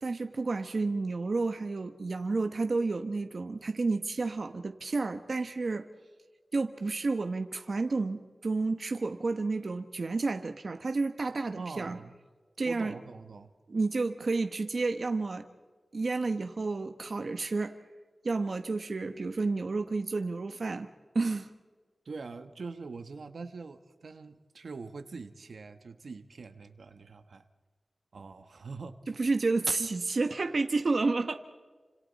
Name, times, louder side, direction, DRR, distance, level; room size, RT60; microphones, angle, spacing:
voice 1, 0.0-5.8 6.5-12.0 12.6-12.9 13.7-15.5 15.9-17.8 18.2-20.9 21.1-21.5 29.2-31.4, right 3 dB, 60° right, 7 dB, 1.1 m, -30 dB
voice 2, 11.5-12.1 12.6-13.5 22.0-27.5 28.1-29.0, right 4 dB, 80° right, 8 dB, 1.3 m, -43 dB
29.5 x 26.5 x 4.2 m, 1.4 s
wide cardioid pair, 80°, 0 cm